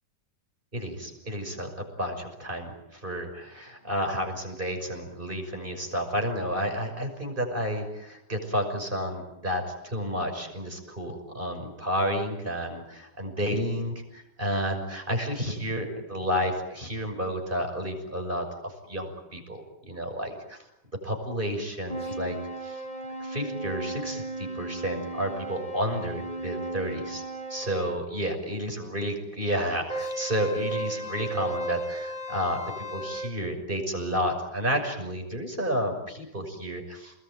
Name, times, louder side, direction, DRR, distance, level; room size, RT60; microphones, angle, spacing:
voice 1, 0.7-20.6 21.0-22.4 22.6-22.8 23.2-27.2 27.5-32.6 32.9-37.1, equal, 25° right, 4 dB, 6.4 m, -31 dB
sound 1, 21.9-28.0 29.9-33.3, right 2 dB, 20° left, 3.7 m, -35 dB
29.0 x 21.0 x 9.1 m, 0.85 s
omnidirectional pair, 1.9 m